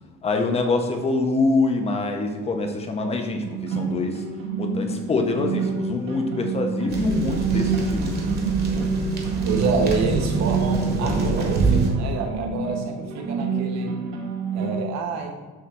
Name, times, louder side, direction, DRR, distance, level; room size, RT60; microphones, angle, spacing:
voice 1, 0.2-4.2 4.6-8.1, left 3 dB, 20° left, 5 dB, 0.5 m, -25 dB
sound 1, 3.4-14.8, right 5 dB, 90° right, 1.4 m, -28 dB
sound 2, 6.9-11.9, right 3 dB, 30° right, 1.0 m, -25 dB
voice 2, 9.4-13.9 14.5-15.3, right 4 dB, 50° right, 3 dB, 1.1 m, -28 dB
7.2 x 3.1 x 6.0 m, 1.3 s
cardioid pair, 180°, 34 cm